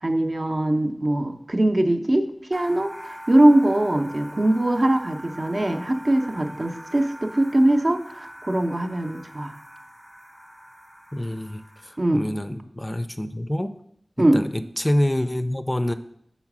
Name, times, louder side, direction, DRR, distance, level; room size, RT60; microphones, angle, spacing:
voice 1, 0.0-9.6 12.0-12.2 14.2-14.4, right 1 dB, 50° right, 5 dB, 0.6 m, -21 dB
sound 1, 2.5-12.2, equal, 15° right, 0.9 m, -42 dB
voice 2, 11.1-13.8 14.2-15.9, left 1 dB, 25° left, 10 dB, 0.4 m, -27 dB
5.6 x 4.1 x 5.9 m, 0.71 s
wide cardioid pair, 45°, 0 cm